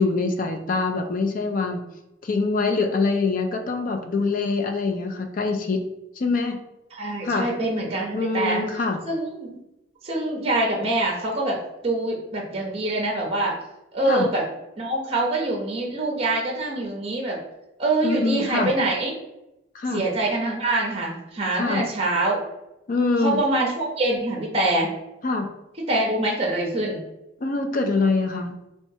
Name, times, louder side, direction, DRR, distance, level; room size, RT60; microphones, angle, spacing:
voice 1, 0.0-1.8 2.2-5.8 6.2-6.6 7.2-7.5 8.1-9.0 14.1-14.3 18.0-18.7 19.7-20.0 21.6-21.8 22.9-23.4 25.2-25.5 27.4-28.5, left 3 dB, 45° left, 5 dB, 0.4 m, -24 dB
voice 2, 7.0-8.6 9.1-9.6 10.0-13.6 13.9-14.4 14.8-17.4 17.8-19.1 19.9-22.4 23.2-24.9 25.8-27.0, right 2 dB, 30° right, -1 dB, 0.6 m, -25 dB
4.1 x 2.3 x 2.7 m, 0.89 s
head